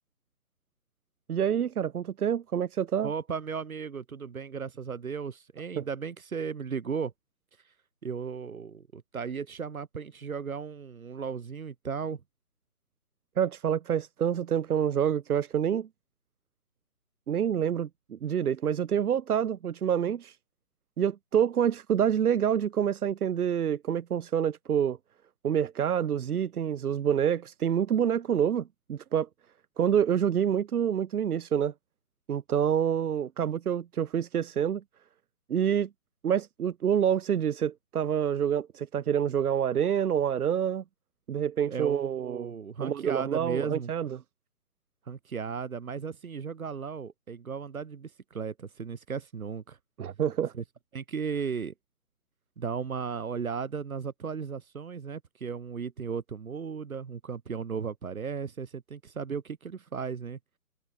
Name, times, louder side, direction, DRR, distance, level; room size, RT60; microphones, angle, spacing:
voice 1, 1.3-3.1 5.8-5.9 13.4-15.9 17.3-20.4 21.0-25.0 25.4-29.3 29.8-31.7 32.3-34.8 35.5-35.9 36.2-40.8 41.3-42.5 42.8-44.2 50.0-50.5, right 9 dB, 85° right, 0.7 m, -27 dB
voice 2, 3.0-7.1 8.0-12.2 41.7-43.9 45.1-49.8 50.5-50.6 50.9-51.7 52.6-60.4, right 6 dB, 70° right, 1.6 m, -35 dB
hypercardioid pair, 165°, 44 cm